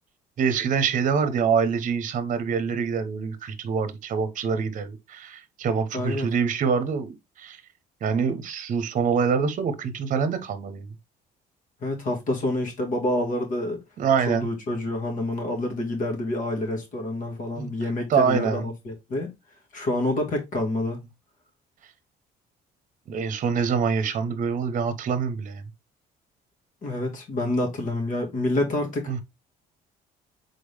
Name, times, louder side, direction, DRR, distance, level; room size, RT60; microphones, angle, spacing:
voice 1, 0.4-7.6 8.0-10.9 14.0-14.5 17.6-17.7 18.1-18.7 23.1-25.6 29.1-29.2, right 6 dB, 50° right, 0.8 m, -25 dB
voice 2, 5.9-6.3 11.8-13.8 14.3-19.3 19.7-21.0 26.8-29.2, left 1 dB, 50° left, 1.9 m, -27 dB
3.8 x 3.6 x 3.3 m
cardioid pair, 110°, 17 cm